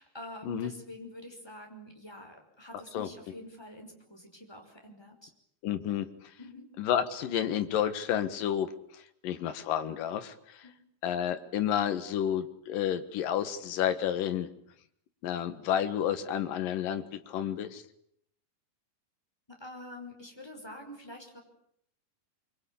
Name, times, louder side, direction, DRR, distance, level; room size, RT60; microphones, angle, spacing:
voice 1, 0.0-5.3 6.4-6.7 10.6-10.8 19.5-21.4, left 1 dB, 5° left, 2 dB, 5.1 m, -46 dB
voice 2, 5.6-6.1 6.8-8.7 9.2-10.6 11.0-14.5 15.2-17.8, left 9 dB, 65° left, 9 dB, 3.0 m, -30 dB
24.5 x 24.0 x 8.6 m, 0.70 s
omnidirectional pair, 4.7 m